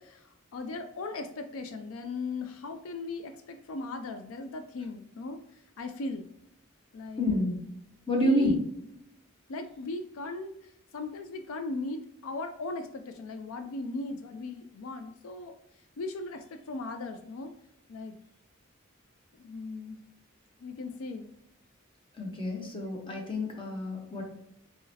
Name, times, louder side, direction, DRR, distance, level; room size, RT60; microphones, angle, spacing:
voice 1, 0.0-6.3 6.9-7.3 8.1-8.6 9.5-17.5 17.9-18.2 19.3-20.0 20.6-21.3, left 3 dB, 75° left, 7 dB, 0.4 m, -38 dB
voice 2, 7.2-7.6 8.1-8.5 22.2-24.2, left 1 dB, 25° left, 0 dB, 1.0 m, -28 dB
4.1 x 3.8 x 2.7 m, 0.78 s
head